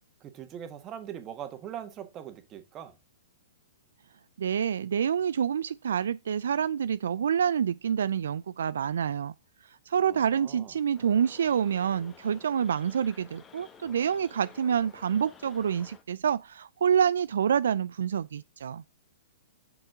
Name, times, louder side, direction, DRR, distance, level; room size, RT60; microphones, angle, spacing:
voice 1, 0.2-2.9 10.1-10.7, right 10 dB, 30° right, 1.7 m, -41 dB
voice 2, 4.4-9.3 9.7-18.8, right 8 dB, 75° right, 0.3 m, -27 dB
sound 1, 10.9-16.0, left 6 dB, 20° left, 1.4 m, -53 dB
8.1 x 5.9 x 3.7 m
hypercardioid pair, 130°, 0 cm